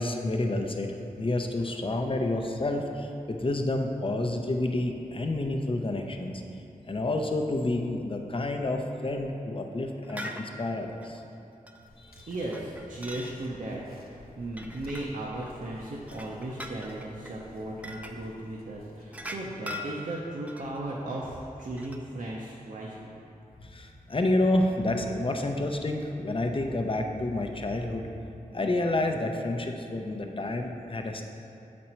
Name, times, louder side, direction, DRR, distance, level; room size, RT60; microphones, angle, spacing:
voice 1, 0.0-6.4 6.8-11.2 12.0-12.3 23.6-28.1 28.5-31.2, left 2 dB, 35° left, 3 dB, 0.6 m, -29 dB
sound 1, 10.0-10.4 11.0-11.2 11.7-11.8 12.3-13.3 14.4-15.5 15.9-17.4 17.8-18.2 19.1-20.8 21.6-22.0, left 1 dB, 10° right, 0.5 m, -41 dB
sound 2, 11.9-19.3, left 1 dB, 85° left, 0.8 m, -52 dB
voice 2, 12.3-23.1, right 1 dB, 60° right, -4 dB, 0.7 m, -36 dB
7.5 x 4.2 x 4.4 m, 2.7 s
cardioid pair, 50°, 15 cm